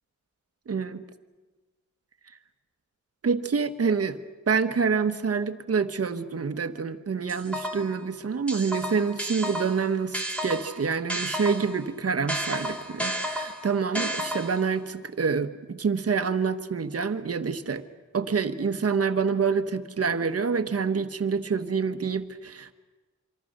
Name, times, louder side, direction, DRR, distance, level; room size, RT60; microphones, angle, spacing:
voice 1, 0.7-1.0 3.2-4.2 4.5-17.8 18.1-22.7, right 5 dB, 50° right, 10 dB, 1.2 m, -27 dB
sound 1, 7.3-8.0 8.5-11.8 12.3-14.7, equal, 5° left, 2.9 m, -32 dB
27.0 x 25.0 x 6.6 m, 1.3 s
wide cardioid pair, 125°, 30 cm